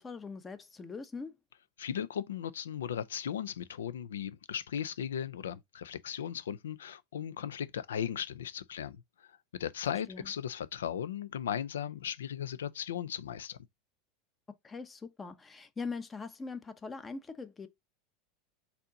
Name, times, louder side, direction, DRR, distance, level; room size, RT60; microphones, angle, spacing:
voice 1, 0.0-1.4 10.1-10.3 14.6-17.7, left 4 dB, 20° left, 0.7 m, -42 dB
voice 2, 1.8-9.0 9.6-13.6, left 9 dB, 85° left, 0.4 m, -37 dB
4.2 x 2.7 x 3.8 m
hypercardioid pair, 95°, 0 cm